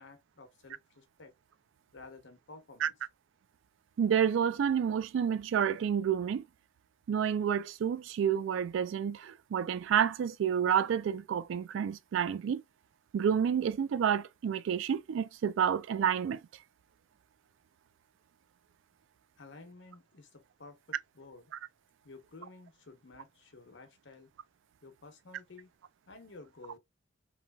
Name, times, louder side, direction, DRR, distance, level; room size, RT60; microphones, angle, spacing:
voice 1, 0.0-1.3 1.9-3.0 19.4-21.5 22.0-24.3 24.8-25.7 26.1-26.8, left 3 dB, 70° left, 0.8 m, -52 dB
voice 2, 4.0-6.4 7.1-12.6 13.1-16.4, right 8 dB, 75° right, 0.3 m, -29 dB
3.1 x 2.3 x 2.2 m
head